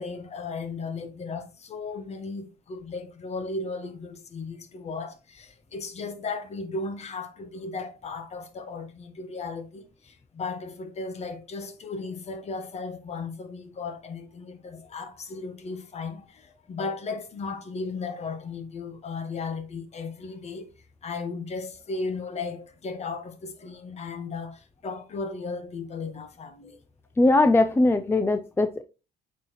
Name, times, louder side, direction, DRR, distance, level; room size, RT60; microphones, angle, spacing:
voice 1, 0.0-20.7 21.0-26.8, left 4 dB, 40° left, 1.4 m, -35 dB
voice 2, 27.2-28.8, left 2 dB, 15° left, 0.5 m, -20 dB
8.5 x 4.3 x 3.1 m
cardioid pair, 110°, 17 cm